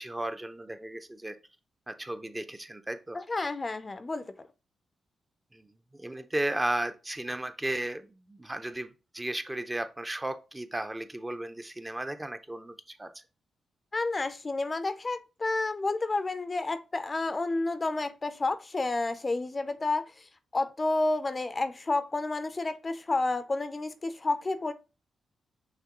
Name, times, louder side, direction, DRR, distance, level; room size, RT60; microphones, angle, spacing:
voice 1, 0.0-1.4 1.9-3.2 5.5-5.7 5.9-13.2, right 1 dB, 20° right, 0.6 m, -35 dB
voice 2, 3.1-4.3 13.9-24.7, left 2 dB, 35° left, 0.4 m, -30 dB
5.8 x 3.1 x 2.9 m
cardioid pair, 55°, 0 cm